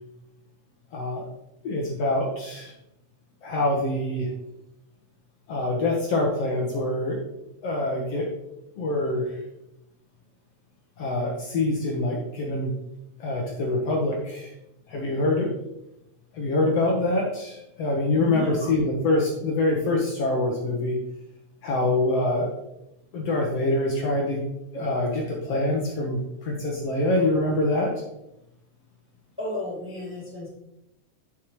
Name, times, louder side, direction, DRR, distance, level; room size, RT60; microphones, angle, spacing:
voice 1, 0.9-1.2 1.6-2.7 3.4-4.3 5.5-7.2 7.6-8.3 8.8-9.4 11.0-12.7 13.2-14.5 14.9-15.5 16.3-21.0 21.6-22.5 23.1-24.4 24.7-27.9, left 2 dB, 60° left, -1 dB, 2.0 m, -25 dB
voice 2, 18.1-18.7 29.4-30.5, left 1 dB, 5° right, -5 dB, 2.0 m, -33 dB
11.0 x 6.5 x 3.1 m, 0.86 s
omnidirectional pair, 3.5 m